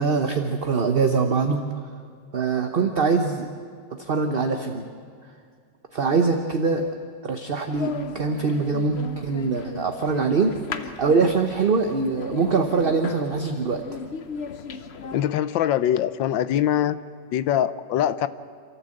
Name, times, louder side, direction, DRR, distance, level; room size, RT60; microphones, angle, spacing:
voice 1, 0.0-1.6 2.3-3.5 3.9-4.9 5.9-6.9 7.2-10.5 10.8-13.8, right 4 dB, 40° right, 5 dB, 0.9 m, -23 dB
sound 1, 7.7-15.3, left 5 dB, 50° left, 0.8 m, -36 dB
voice 2, 15.1-17.0 17.3-18.3, left 11 dB, 80° left, 14 dB, 1.4 m, -23 dB
27.5 x 13.5 x 7.8 m, 2.1 s
omnidirectional pair, 2.0 m